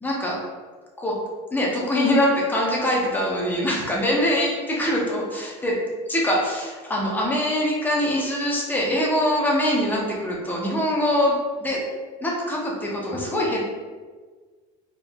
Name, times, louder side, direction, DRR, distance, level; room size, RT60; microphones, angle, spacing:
voice 1, 0.0-0.4 1.0-1.1 1.5-5.8 6.1-11.8 12.2-13.6, left 1 dB, 10° left, -3 dB, 0.7 m, -23 dB
4.4 x 3.6 x 2.3 m, 1.4 s
cardioid pair, 160°, 20 cm